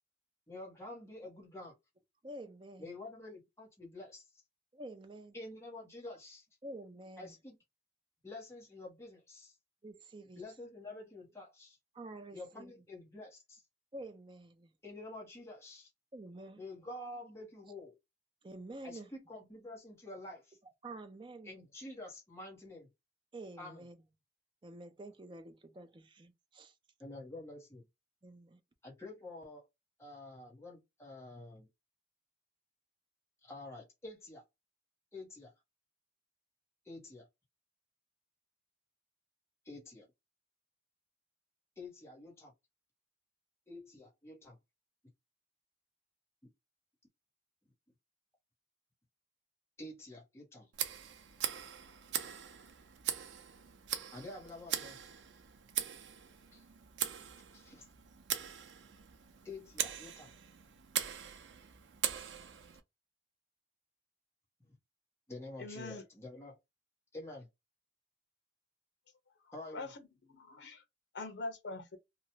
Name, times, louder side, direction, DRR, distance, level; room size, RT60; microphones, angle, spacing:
voice 1, 0.5-1.7 2.8-4.3 5.3-6.5 7.2-7.6 8.2-9.6 10.4-11.8 12.3-13.6 14.8-15.9 16.6-18.0 18.8-20.6 21.4-22.9 23.6-23.8 27.0-27.8 28.8-29.7 30.0-31.7 33.4-34.4 35.1-35.5 36.8-37.3 39.6-40.1 41.8-42.5 43.7-44.6 46.4-46.5 49.8-50.7 54.1-55.0 56.5-56.6 57.5-57.9 59.4-60.3 65.3-66.6 67.1-67.5 69.5-69.9, left 2 dB, 15° left, 1.1 m, -48 dB
voice 2, 2.2-2.9 4.7-5.3 6.6-7.3 9.8-10.4 11.9-12.7 13.9-14.7 16.1-16.6 18.4-19.1 20.8-21.5 23.3-24.0 24.6-26.7 28.2-28.6, right 2 dB, 25° right, 0.5 m, -48 dB
Tick, 50.7-62.8, right 10 dB, 85° right, 0.5 m, -41 dB
voice 3, 65.6-66.0 69.4-70.8 71.1-72.0, left 2 dB, 75° left, 0.8 m, -44 dB
3.0 x 2.3 x 2.7 m
head